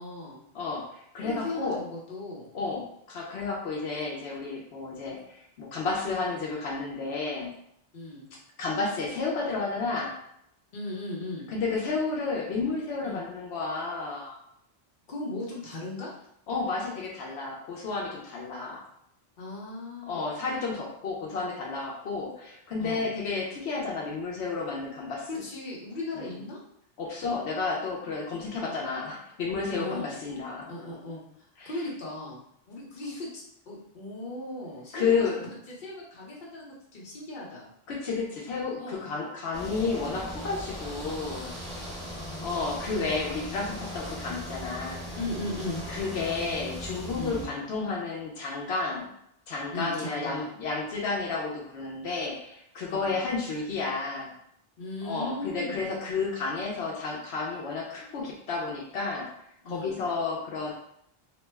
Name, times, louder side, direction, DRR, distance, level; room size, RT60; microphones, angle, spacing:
voice 1, 0.0-0.4 1.2-2.5 7.9-8.3 10.7-11.5 13.0-13.2 15.1-16.1 19.4-20.3 22.8-23.1 25.3-26.6 28.6-28.9 29.7-30.1 30.7-32.4 32.7-35.3 35.7-37.7 38.8-39.1 41.7-42.5 45.1-45.8 47.1-47.4 49.7-50.5 52.9-53.1 54.8-55.9 59.6-60.0, left 2 dB, 50° left, -4 dB, 0.9 m, -37 dB
voice 2, 0.5-1.8 2.5-7.5 8.6-10.2 11.5-14.4 16.5-18.8 20.1-25.3 26.1-26.3 27.0-30.7 31.6-31.7 34.9-35.4 37.9-41.5 42.4-45.0 45.9-49.1 49.5-54.3 55.0-59.3 59.7-60.7, left 4 dB, 80° left, -2 dB, 0.9 m, -31 dB
sound 1, 39.5-47.4, equal, ahead, 1.0 m, -38 dB
2.9 x 2.1 x 3.3 m, 0.72 s
omnidirectional pair, 1.1 m